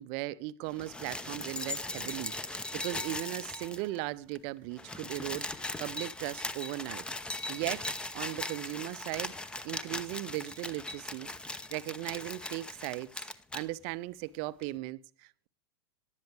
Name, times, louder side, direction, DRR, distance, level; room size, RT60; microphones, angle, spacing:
voice 1, 0.0-7.0 7.5-9.3 9.6-11.3 11.7-13.1 13.5-15.5, right 17 dB, 40° right, 0.6 m, -38 dB
sound 1, 0.7-4.0 4.3-4.4 4.6-13.7 14.6-14.7, left 2 dB, 5° left, 0.7 m, -39 dB
18.0 x 11.5 x 3.3 m
figure-of-eight pair, 95°, 14 cm